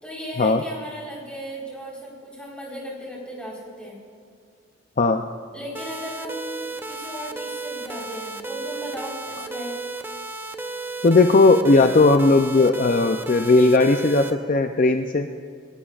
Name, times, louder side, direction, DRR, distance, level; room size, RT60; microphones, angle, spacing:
voice 1, 0.0-4.0 5.5-9.8, equal, 5° left, -4 dB, 4.1 m, -36 dB
sound 1, 5.7-14.3, right 3 dB, 10° right, 0.6 m, -34 dB
voice 2, 11.0-15.3, left 3 dB, 40° left, 6 dB, 0.5 m, -17 dB
28.0 x 13.5 x 2.5 m, 2.3 s
head